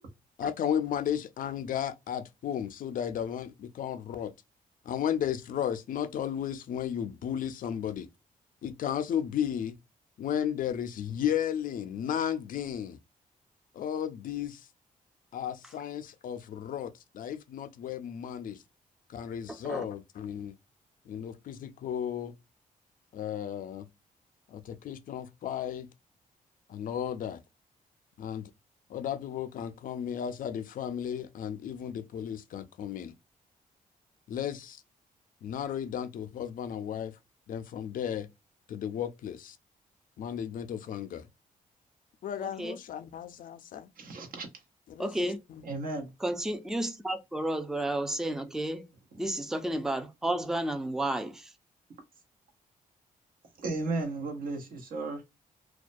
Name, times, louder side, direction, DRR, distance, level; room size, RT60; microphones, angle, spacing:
voice 1, 0.4-4.3 4.9-8.1 8.6-9.7 10.2-13.0 13.7-14.7 15.3-18.6 19.1-20.5 21.1-22.3 23.1-23.9 24.5-25.9 26.7-27.4 28.2-28.5 28.9-33.1 34.3-34.8 35.4-37.1 37.5-38.3 38.7-39.6 40.2-41.3 42.2-43.9 44.9-45.2, left 9 dB, 65° left, 0.4 m, -34 dB
voice 2, 19.5-19.9 42.4-42.8 45.0-45.4 46.2-48.9 49.2-51.5, right 1 dB, 5° right, 0.4 m, -32 dB
voice 3, 44.0-44.5 45.6-46.1 53.6-55.2, right 3 dB, 70° right, 1.0 m, -34 dB
2.3 x 2.1 x 2.5 m
cardioid pair, 95°, 15 cm